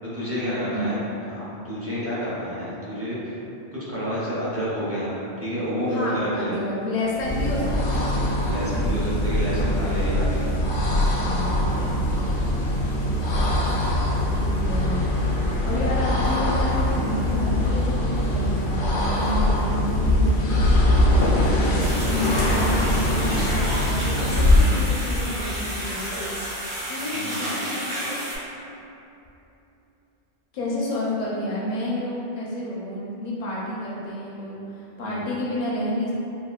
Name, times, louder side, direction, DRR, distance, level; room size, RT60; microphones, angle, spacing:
voice 1, 0.0-1.0 1.3-3.3 3.9-6.5 8.2-10.4 11.7-12.0 24.1-24.4 27.1-27.4 35.1-35.3, equal, 20° right, -10 dB, 0.4 m, -29 dB
voice 2, 5.9-8.3 10.9-11.9 14.3-15.0 15.6-21.6 22.0-26.0 26.9-28.2 30.5-36.1, left 1 dB, 50° left, -6 dB, 0.6 m, -30 dB
sound 1, 7.1-24.9, left 1 dB, 85° left, 0.9 m, -22 dB
sound 2, 13.3-18.2, left 9 dB, 65° right, 1.3 m, -31 dB
sound 3, 21.8-28.4, right 1 dB, 90° right, 1.0 m, -31 dB
3.5 x 2.3 x 2.3 m, 2.9 s
omnidirectional pair, 1.1 m